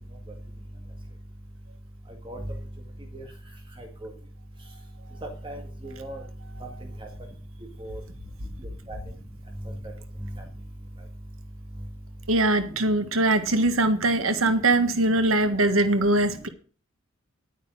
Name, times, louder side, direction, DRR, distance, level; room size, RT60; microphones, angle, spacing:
voice 1, 3.8-4.1 5.2-6.2 7.8-8.0 8.9-9.0 13.8-13.9 14.8-14.9 15.2-15.3, right 1 dB, 25° right, 3 dB, 1.9 m, -38 dB
voice 2, 12.3-16.5, right 2 dB, 80° right, 9 dB, 1.5 m, -22 dB
10.5 x 9.1 x 6.3 m, 0.40 s
head